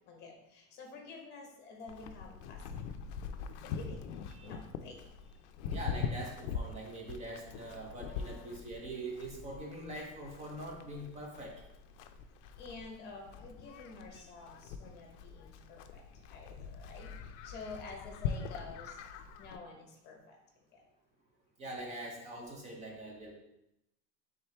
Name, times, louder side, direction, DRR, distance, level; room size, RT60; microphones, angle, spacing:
voice 1, 0.1-2.6 3.6-4.0 4.4-5.0 12.6-16.0 16.3-17.1 17.4-18.9 19.4-20.2, left 3 dB, 30° left, 2 dB, 0.9 m, -49 dB
Livestock farm animals working animals, 1.9-19.6, left 6 dB, 75° left, 0.5 m, -43 dB
voice 2, 5.7-11.6 14.1-14.2 21.6-23.3, right 1 dB, 20° right, 0 dB, 0.7 m, -43 dB
4.3 x 3.7 x 3.3 m, 0.86 s
supercardioid pair, 165°, 35 cm